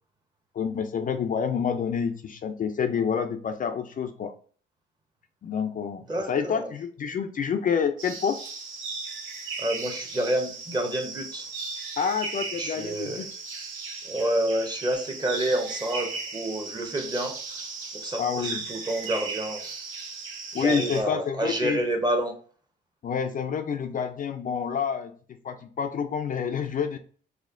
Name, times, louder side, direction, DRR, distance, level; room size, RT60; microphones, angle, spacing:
voice 1, 0.5-4.3 5.4-8.4 12.0-13.3 18.2-18.6 20.5-21.8 23.0-25.1 25.4-27.0, left 6 dB, 45° left, 0.4 m, -28 dB
voice 2, 6.1-6.7 9.6-11.5 12.6-13.3 14.0-19.6 20.5-22.4, right 1 dB, 20° right, 0.9 m, -29 dB
sound 1, 8.0-21.0, right 4 dB, 80° right, 0.9 m, -37 dB
4.2 x 2.5 x 2.5 m
cardioid pair, 90°, 20 cm